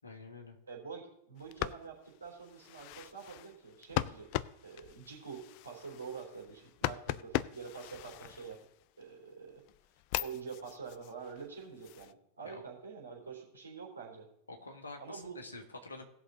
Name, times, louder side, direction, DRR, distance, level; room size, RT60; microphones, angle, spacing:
voice 1, 0.0-0.6 12.4-12.6 14.5-16.0, left 3 dB, 75° left, 2 dB, 1.7 m, -47 dB
voice 2, 0.7-4.3 4.6-8.6 9.0-9.6 10.2-14.3 15.0-15.4, right 5 dB, 75° right, -2 dB, 3.5 m, -46 dB
sound 1, 1.4-9.0 9.5-12.1, left 16 dB, 45° left, 0.4 m, -40 dB
18.0 x 6.3 x 3.8 m, 0.78 s
figure-of-eight pair, 90°, 0 cm